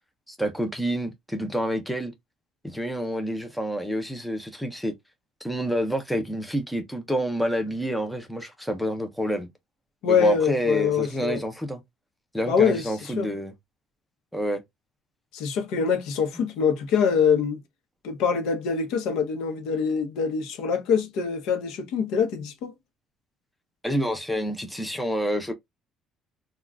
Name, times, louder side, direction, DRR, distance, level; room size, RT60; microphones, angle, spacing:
voice 1, 0.3-2.1 2.6-4.9 5.4-9.5 10.1-11.8 12.3-13.5 14.3-14.6 23.8-25.5, equal, ahead, 0.6 m, -28 dB
voice 2, 10.0-11.4 12.5-13.3 15.3-17.6 18.0-22.7, left 6 dB, 75° left, 0.8 m, -24 dB
3.5 x 2.3 x 2.3 m
cardioid pair, 155°, 0 cm